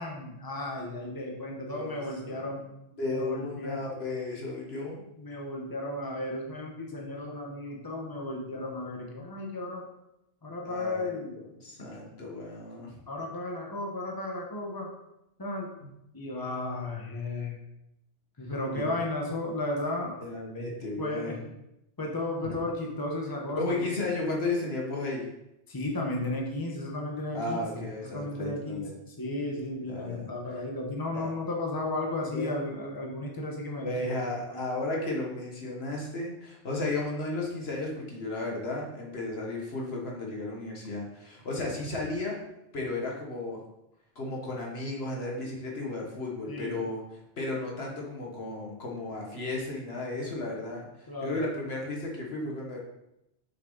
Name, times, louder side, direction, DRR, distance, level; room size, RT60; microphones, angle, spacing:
voice 1, 0.0-2.6 3.1-3.8 5.2-9.8 10.4-11.3 13.1-14.9 15.4-15.7 16.1-17.5 18.4-20.1 21.0-21.4 22.0-23.9 25.7-33.9 34.3-34.6 46.5-46.8 51.1-51.4, left 2 dB, 20° left, -1 dB, 1.2 m, -34 dB
voice 2, 1.7-2.5 3.0-5.0 10.6-13.0 18.7-18.8 20.2-21.4 23.6-25.3 27.3-29.0 29.8-30.6 31.1-31.3 32.3-32.5 33.8-42.4 42.7-43.6 44.2-52.8, left 2 dB, 70° left, -2 dB, 1.8 m, -34 dB
7.0 x 6.4 x 4.0 m, 0.87 s
omnidirectional pair, 1.1 m